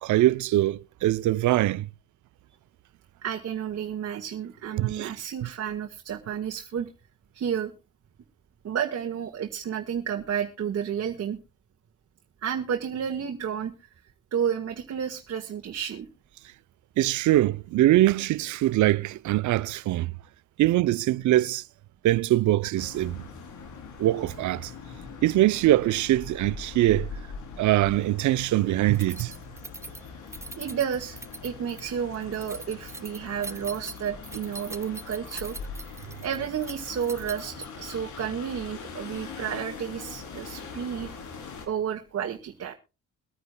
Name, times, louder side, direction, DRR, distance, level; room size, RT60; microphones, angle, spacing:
voice 1, 0.0-1.9 4.7-5.1 5.4-5.5 17.0-20.1 20.6-21.6 22.0-23.2 24.0-24.7 25.2-27.1 27.6-29.3, right 15 dB, 75° right, 0.6 m, -23 dB
voice 2, 3.2-6.9 7.3-7.7 8.6-11.4 12.4-13.9 14.3-16.1 30.6-35.6 36.2-41.1 41.6-42.7, right 8 dB, 55° right, 1.6 m, -31 dB
sound 1, 22.8-41.7, left 5 dB, 75° left, 3.7 m, -42 dB
Keys jangling, 28.9-38.0, right 2 dB, 10° right, 0.7 m, -42 dB
23.0 x 9.5 x 2.2 m
cardioid pair, 90°, 30 cm